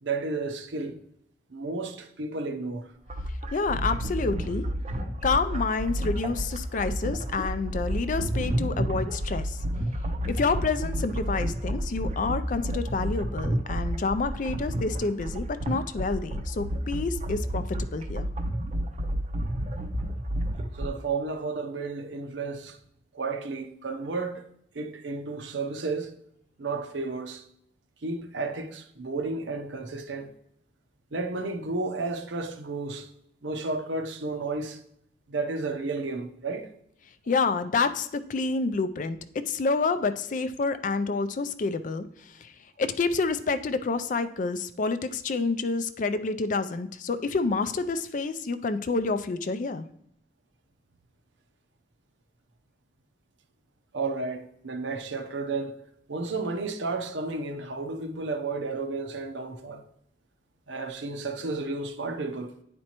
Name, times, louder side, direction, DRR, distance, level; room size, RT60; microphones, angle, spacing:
voice 1, 0.0-1.0 1.5-2.9 20.8-22.8 23.1-24.5 24.7-26.1 26.6-27.4 28.0-30.3 31.1-33.1 33.4-34.8 35.3-36.7 53.9-55.8 56.1-59.8 60.7-62.5, right 3 dB, 80° right, 0.7 m, -32 dB
sound 1, 3.1-20.9, equal, 35° right, 0.5 m, -30 dB
voice 2, 3.5-4.7 5.2-9.6 10.2-18.3 37.3-42.5 42.8-49.9, left 4 dB, 45° left, 0.4 m, -28 dB
9.7 x 4.3 x 2.9 m
head